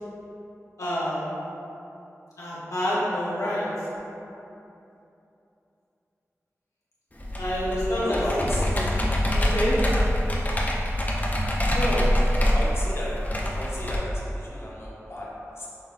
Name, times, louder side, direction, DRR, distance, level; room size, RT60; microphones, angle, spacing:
voice 1, 0.8-1.4 2.4-3.7 7.4-8.5 8.7-8.9 9.5-9.8 11.7-12.1, equal, 80° left, -9 dB, 0.7 m, -27 dB
Computer keyboard, 7.2-14.0, equal, 30° left, 0.6 m, -25 dB
voice 2, 7.9-8.7 12.5-13.1 13.5-15.7, left 1 dB, 50° left, -6 dB, 0.9 m, -34 dB
5.8 x 2.6 x 2.4 m, 2.8 s
wide cardioid pair, 45°, 6 cm